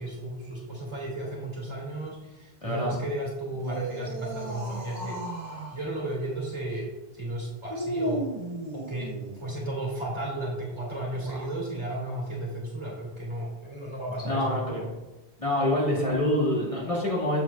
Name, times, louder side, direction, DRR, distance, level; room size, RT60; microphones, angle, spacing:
voice 1, 0.0-5.2 5.5-8.3 8.7-9.1 9.4-14.9 15.5-15.6, right 1 dB, 30° right, -4 dB, 1.9 m, -34 dB
voice 2, 2.6-3.0 14.2-14.8 15.4-17.4, left 1 dB, 35° left, -6 dB, 1.7 m, -26 dB
sound 1, 3.5-5.8 7.7-9.5 11.1-11.6, right 1 dB, 45° right, 1.1 m, -35 dB
7.6 x 6.7 x 2.3 m, 1.0 s
omnidirectional pair, 1.0 m